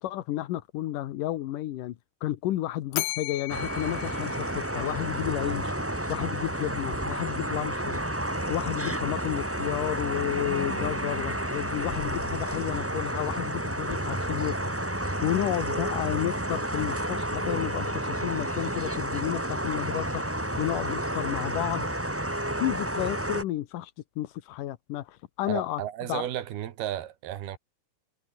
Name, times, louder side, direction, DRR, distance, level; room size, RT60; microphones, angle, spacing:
voice 1, 0.0-5.7 6.1-8.0 8.5-14.6 15.2-21.9 22.6-25.8 26.1-26.3, left 14 dB, 70° left, 2.4 m, -32 dB
Bell, 2.9-5.2, left 21 dB, 85° left, 2.7 m, -36 dB
sound 1, 3.5-23.4, right 1 dB, 5° right, 1.4 m, -31 dB
sound 2, 11.6-13.3, left 7 dB, 40° left, 2.3 m, -43 dB
voice 2, 25.5-27.6, right 12 dB, 75° right, 3.7 m, -33 dB
omnidirectional pair, 4.5 m